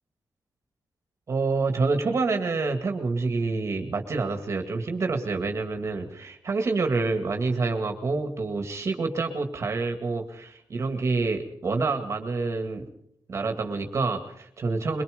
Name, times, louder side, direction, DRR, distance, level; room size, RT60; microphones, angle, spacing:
voice 1, 1.3-12.9 13.3-15.0, right 3 dB, 40° right, 5 dB, 2.1 m, -27 dB
23.0 x 22.5 x 5.2 m, 0.69 s
wide cardioid pair, 165°, 7 cm